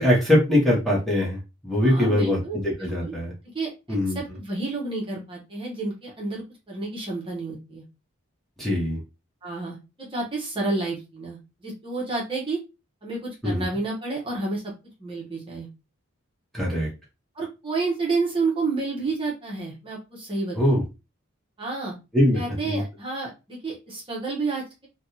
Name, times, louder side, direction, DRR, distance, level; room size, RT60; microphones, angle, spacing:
voice 1, 0.0-1.4 1.6-2.4 2.6-3.3 3.9-4.2 8.6-9.0 13.4-13.6 16.5-16.9 20.5-20.8 22.1-22.4 22.6-22.8, left 1 dB, ahead, -4 dB, 1.0 m, -21 dB
voice 2, 1.8-3.1 3.5-7.8 9.4-12.6 13.0-14.7 15.0-15.7 17.3-20.8 21.6-21.9 22.3-24.9, right 3 dB, 25° right, -3 dB, 0.9 m, -30 dB
3.4 x 2.3 x 2.8 m, 0.27 s
head